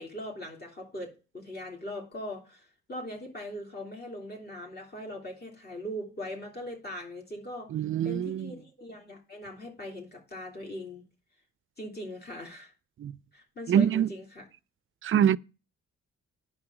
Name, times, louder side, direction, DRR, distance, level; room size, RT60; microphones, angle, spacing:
voice 1, 0.0-11.0 11.8-12.7 13.3-14.4, left 1 dB, 35° left, 3.1 m, -40 dB
voice 2, 7.7-8.5 13.0-13.2 13.7-14.1 15.0-15.4, right 9 dB, 45° right, 0.4 m, -24 dB
9.5 x 5.7 x 5.9 m
cardioid pair, 90°, 30 cm